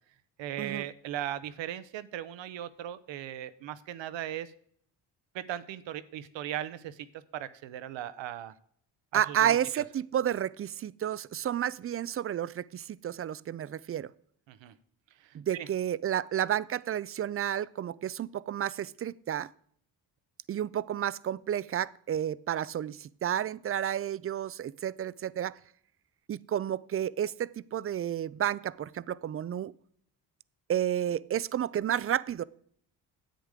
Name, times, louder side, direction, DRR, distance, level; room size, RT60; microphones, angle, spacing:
voice 1, 0.4-4.5 5.3-8.5 9.1-9.8 14.5-14.7 15.2-15.7, right 11 dB, 80° right, 0.9 m, -38 dB
voice 2, 9.1-14.1 15.3-19.5 20.5-25.6 26.3-29.7 30.7-32.4, right 10 dB, 35° right, 0.4 m, -31 dB
10.0 x 8.1 x 4.9 m
cardioid pair, 75°, 44 cm